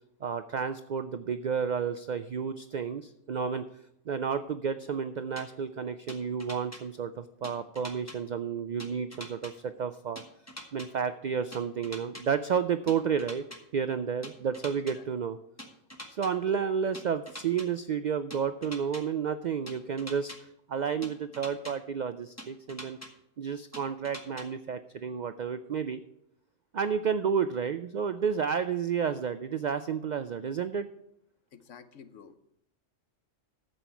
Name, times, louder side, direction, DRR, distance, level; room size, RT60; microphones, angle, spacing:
voice 1, 0.2-3.7 4.1-10.2 10.7-13.4 13.7-15.4 16.1-20.3 20.7-23.0 23.4-26.0 26.7-30.9, right 7 dB, 75° right, 11 dB, 0.4 m, -31 dB
sound 1, 5.4-5.5 6.1-6.8 7.4-8.2 8.8-9.5 10.2-10.9 11.5-12.2 12.9-13.6 14.2-14.9 15.6-16.3 16.9-17.7 18.3-19.0 19.7-20.4 21.0-21.7 22.4-23.1 23.7-24.5, equal, 15° left, 1.2 m, -43 dB
voice 2, 31.5-32.4, left 7 dB, 75° left, 10 dB, 1.2 m, -50 dB
12.5 x 7.8 x 4.6 m, 0.80 s
omnidirectional pair, 1.3 m